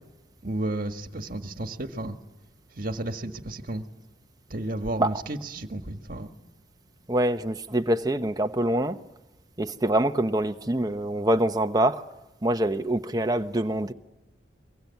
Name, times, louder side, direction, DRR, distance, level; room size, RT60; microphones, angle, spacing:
voice 1, 0.4-2.2 2.7-3.8 4.5-6.3, right 2 dB, 50° right, 1.6 m, -32 dB
voice 2, 7.1-9.0 9.6-12.0 12.4-13.9, right 1 dB, 20° right, 0.9 m, -25 dB
24.0 x 23.5 x 9.4 m
head